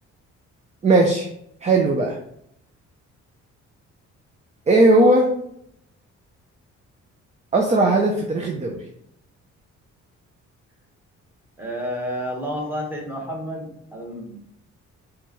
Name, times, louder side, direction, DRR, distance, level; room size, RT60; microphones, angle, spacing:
voice 1, 0.8-1.3 1.6-2.2 4.7-5.3 7.5-8.8, right 2 dB, 25° right, 2 dB, 0.5 m, -17 dB
voice 2, 11.6-14.4, equal, 5° right, -2 dB, 1.3 m, -30 dB
4.6 x 2.3 x 3.0 m, 0.73 s
cardioid pair, 90°, 30 cm